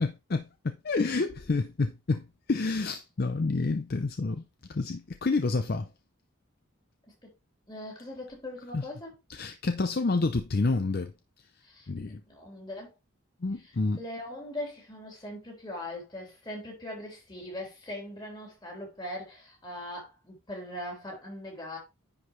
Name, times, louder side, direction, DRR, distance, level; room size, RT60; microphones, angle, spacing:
voice 1, 0.0-2.2 2.5-4.4 4.7-5.9 8.7-8.9 9.3-11.1 11.9-12.2 13.4-14.0, left 3 dB, 45° left, 0.5 m, -28 dB
voice 2, 7.7-9.1 11.6-12.9 13.6-21.8, left 1 dB, 20° left, 3.6 m, -40 dB
10.0 x 4.8 x 3.2 m
head